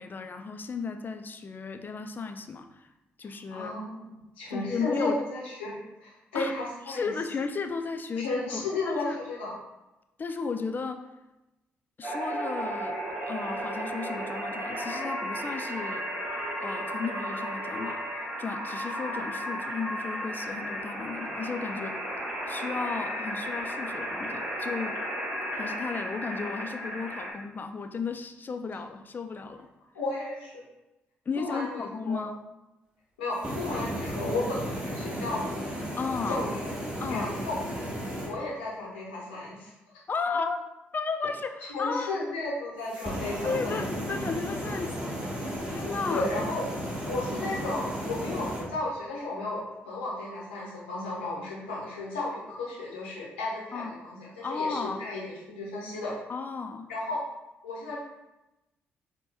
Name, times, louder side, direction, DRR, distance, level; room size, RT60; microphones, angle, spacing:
voice 1, 0.0-2.9 3.2-3.7 4.5-5.2 6.3-6.5 6.9-9.2 10.2-11.1 12.0-16.1 16.6-22.0 22.5-25.0 25.5-29.7 31.3-32.3 35.9-36.4 37.0-37.3 40.1-42.1 43.4-45.0 45.7-46.3 53.7-54.0 54.4-55.1 56.3-56.9, left 4 dB, 35° left, 7 dB, 0.4 m, -34 dB
voice 2, 3.5-5.8 6.0-7.1 8.2-9.5 29.9-30.6 31.4-32.2 33.2-35.7 36.3-37.6 38.2-39.7 41.7-43.8 46.1-46.6 47.1-56.1 56.9-57.2 57.6-58.0, left 2 dB, 85° left, -4 dB, 0.7 m, -34 dB
sound 1, 12.0-27.3, equal, 35° right, 1.2 m, -34 dB
sound 2, 33.3-38.3 42.8-48.7, equal, 15° right, 1.3 m, -34 dB
4.0 x 2.2 x 3.5 m, 0.98 s
hypercardioid pair, 40°, 6 cm